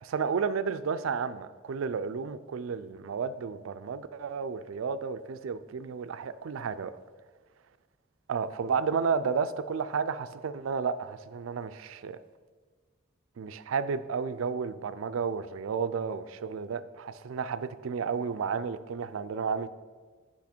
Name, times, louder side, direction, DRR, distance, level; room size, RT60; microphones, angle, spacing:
voice 1, 0.0-6.9 8.3-12.2 13.4-19.7, right 5 dB, 80° right, 13 dB, 0.4 m, -32 dB
8.3 x 5.8 x 4.4 m, 1.4 s
head